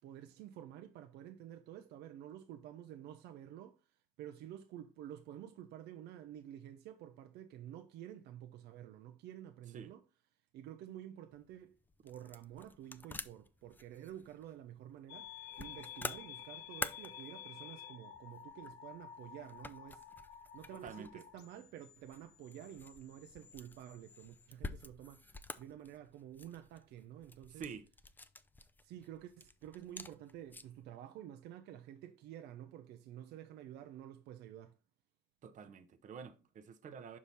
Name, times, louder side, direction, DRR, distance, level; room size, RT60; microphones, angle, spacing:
voice 1, 0.0-3.8 4.2-10.0 10.5-11.8 12.0-15.3 15.6-20.1 20.5-27.7 28.8-34.8, right 11 dB, 80° right, 0.6 m, -50 dB
sound 1, 11.3-30.9, left 2 dB, 10° left, 0.5 m, -50 dB
sound 2, 15.1-24.5, left 10 dB, 80° left, 1.2 m, -52 dB
voice 2, 20.7-21.2 27.5-27.9 35.4-37.2, right 6 dB, 50° right, 0.8 m, -48 dB
5.7 x 4.8 x 4.1 m
cardioid pair, 110°, 17 cm